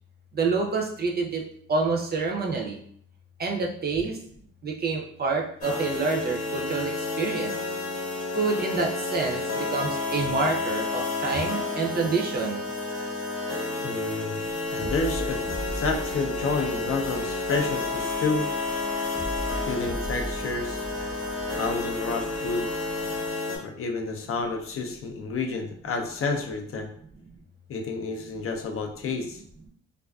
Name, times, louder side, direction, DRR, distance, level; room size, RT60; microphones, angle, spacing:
voice 1, 0.3-1.4 1.7-2.8 3.4-4.2 4.6-7.6 8.3-12.6 14.8-14.9, right 4 dB, 35° right, 1 dB, 0.5 m, -27 dB
sound 1, 5.6-23.6, left 3 dB, 65° left, 0.8 m, -31 dB
voice 2, 13.8-14.4 14.7-15.4 15.7-18.5 19.7-20.8 21.6-22.7 23.6-26.9 27.7-29.4, left 4 dB, 50° left, 3 dB, 0.4 m, -30 dB
sound 2, 14.7-23.3, equal, 15° left, 0.8 m, -38 dB
2.4 x 2.3 x 2.3 m, 0.63 s
cardioid pair, 90°, 30 cm